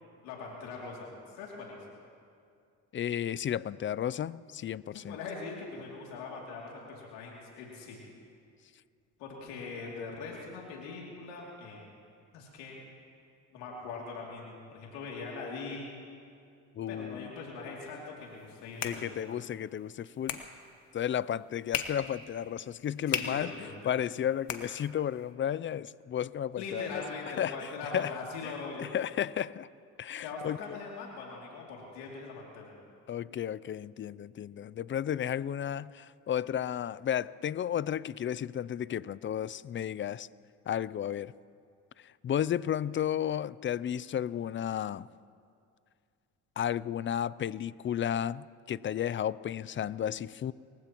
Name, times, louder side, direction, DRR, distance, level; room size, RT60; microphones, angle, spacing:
voice 1, 0.2-1.8 4.9-8.0 9.2-11.9 12.3-12.8 13.5-16.0 16.9-19.4 23.1-23.7 26.6-28.9 30.2-32.7, left 4 dB, 85° left, -2 dB, 2.8 m, -41 dB
voice 2, 2.9-5.2 16.8-17.3 18.8-20.4 20.9-23.5 23.9-27.0 27.4-28.1 28.4-28.5 28.8-29.7 30.0-30.8 33.1-40.3 40.7-41.3 42.0-45.1 46.6-50.5, left 10 dB, 30° left, 20 dB, 0.4 m, -33 dB
sound 1, 18.3-25.3, left 8 dB, 60° left, 1.4 m, -41 dB
29.0 x 16.0 x 3.0 m, 2.3 s
supercardioid pair, 75°, 38 cm